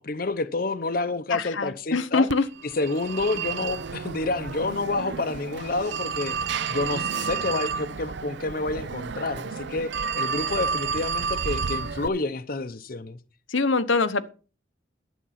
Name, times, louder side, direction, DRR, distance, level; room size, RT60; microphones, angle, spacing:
voice 1, 0.0-2.3 2.7-6.4 6.7-13.2, left 3 dB, 50° left, 0.7 m, -29 dB
voice 2, 1.3-2.5 13.5-14.3, left 3 dB, 80° left, 0.9 m, -24 dB
Telephone, 2.3-12.1, right 5 dB, 65° right, 0.5 m, -31 dB
11.0 x 8.0 x 5.7 m
head